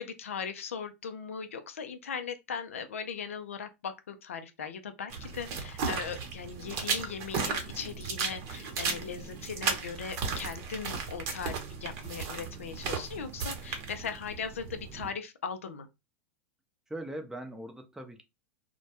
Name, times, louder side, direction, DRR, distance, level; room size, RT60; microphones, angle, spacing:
voice 1, 0.0-15.9, left 6 dB, 85° left, 0.4 m, -39 dB
sound 1, 5.1-15.1, right 5 dB, 50° right, 0.8 m, -35 dB
voice 2, 16.9-18.2, right 1 dB, 5° right, 0.5 m, -40 dB
2.2 x 2.1 x 2.8 m
hypercardioid pair, 105°, 7 cm